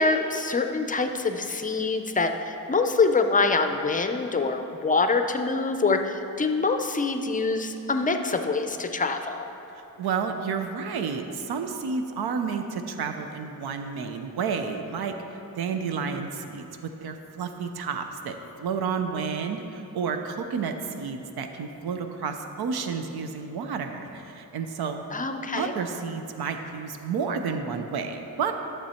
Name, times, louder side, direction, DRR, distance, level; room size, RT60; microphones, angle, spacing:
voice 1, 0.0-9.5 25.1-25.7, left 3 dB, 20° left, 6 dB, 0.5 m, -25 dB
voice 2, 10.0-15.1 15.6-16.7 17.0-25.0 25.5-28.5, right 5 dB, 85° right, 6 dB, 0.7 m, -31 dB
12.5 x 6.8 x 4.3 m, 2.9 s
wide cardioid pair, 150°, 37 cm